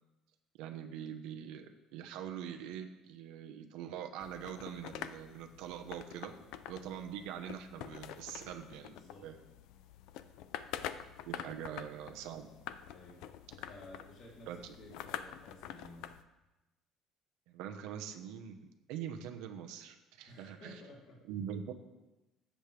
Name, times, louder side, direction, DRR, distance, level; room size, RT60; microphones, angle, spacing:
voice 1, 0.6-6.3 6.7-9.0 9.2-9.4 11.2-12.5 14.5-14.6 17.5-18.6 18.9-20.8 21.3-21.7, right 9 dB, 85° right, 5 dB, 1.1 m, -43 dB
sound 1, 4.2-16.2, left 10 dB, 75° left, 0.5 m, -47 dB
voice 2, 8.8-9.3 12.9-13.2 13.5-14.5 14.8-16.1 20.3-21.2, left 2 dB, 45° left, -5 dB, 3.1 m, -54 dB
17.0 x 7.8 x 3.4 m, 1.0 s
cardioid pair, 160°, 0 cm